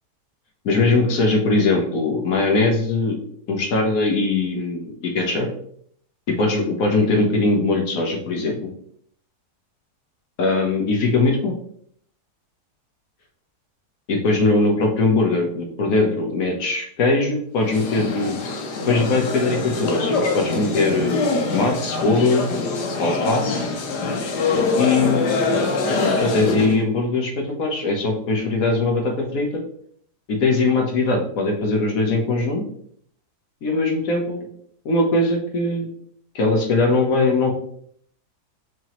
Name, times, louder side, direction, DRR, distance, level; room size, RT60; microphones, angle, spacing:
voice 1, 0.6-3.2 3.5-5.5 6.3-8.7 10.4-11.5 14.1-18.4 18.9-22.5 23.0-23.7 24.7-25.6 25.9-29.6 30.3-32.6 33.6-34.5 34.8-35.9 36.3-37.5, left 3 dB, 60° left, 2 dB, 1.3 m, -21 dB
sound 1, 17.6-26.8, left 3 dB, 85° left, 1.4 m, -24 dB
4.9 x 3.7 x 3.0 m, 0.65 s
omnidirectional pair, 1.8 m